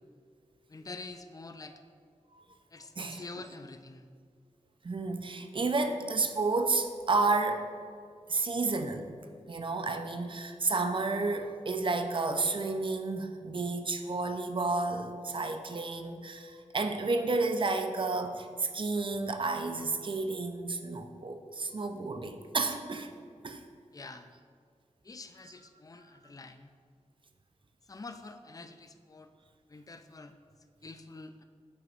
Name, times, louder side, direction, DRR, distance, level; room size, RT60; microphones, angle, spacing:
voice 1, 0.7-1.8 2.7-4.1 23.9-24.3 25.0-26.7 27.9-29.3 29.7-30.3 30.8-31.4, left 3 dB, 30° left, 8 dB, 0.4 m, -46 dB
voice 2, 4.8-7.7 8.3-9.1 9.5-23.1 23.4-23.6, right 3 dB, 40° right, 7 dB, 0.5 m, -31 dB
8.5 x 3.0 x 5.4 m, 2.1 s
wide cardioid pair, 65°, 13 cm